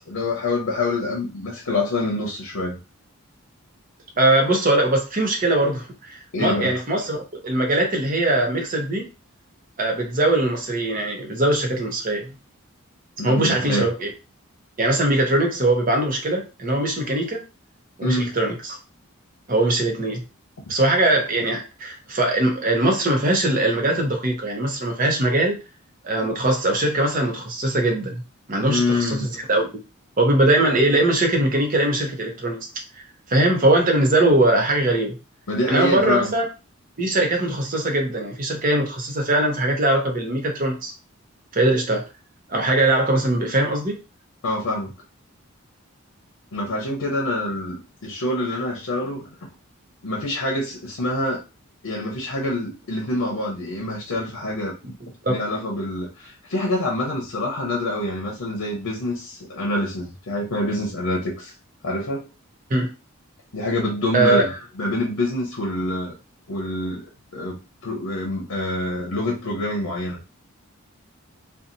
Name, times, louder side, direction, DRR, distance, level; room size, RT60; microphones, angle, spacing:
voice 1, 0.1-2.8 6.3-6.7 13.2-13.9 18.0-18.3 28.7-29.3 35.5-36.3 44.4-44.9 46.5-49.3 50.0-51.4 51.8-54.7 55.3-61.5 61.8-62.3 63.5-66.2 66.5-67.0 67.3-67.6 67.8-70.2, left 1 dB, 90° left, 0 dB, 0.7 m, -26 dB
voice 2, 4.2-9.1 9.8-12.3 13.2-14.1 14.8-17.4 18.0-18.8 19.5-20.2 20.7-25.6 26.0-28.2 28.5-29.8 30.2-32.6 32.9-35.2 35.7-36.4 37.0-40.9 41.5-42.0 42.5-44.0 55.0-55.4 62.7-62.9 64.1-64.4, right 1 dB, 40° right, 2 dB, 0.7 m, -21 dB
2.8 x 2.2 x 2.5 m, 0.30 s
head